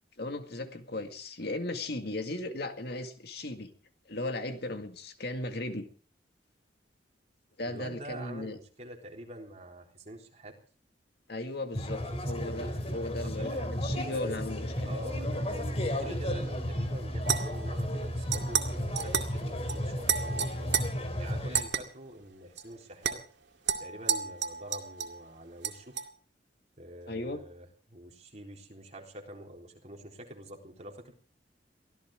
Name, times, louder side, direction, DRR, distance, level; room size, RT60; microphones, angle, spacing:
voice 1, 0.2-3.7 4.1-5.9 7.6-8.6 11.3-14.7 27.1-27.4, left 2 dB, 65° left, 6 dB, 2.1 m, -36 dB
voice 2, 7.7-10.5 13.2-14.5 14.8-20.7 21.2-23.2 23.8-26.0 26.8-31.1, right 1 dB, 40° right, 1 dB, 3.8 m, -46 dB
sound 1, 11.7-21.6, equal, 35° left, 3.5 m, -33 dB
sound 2, 17.2-17.7 18.3-18.7 19.0-19.3 19.7-19.8 20.1-20.8 21.5-21.8 22.6-22.7 23.0-23.2 23.7-25.2 25.6-26.1, right 8 dB, 80° right, 2.3 m, -30 dB
24.0 x 16.0 x 3.7 m, 0.40 s
head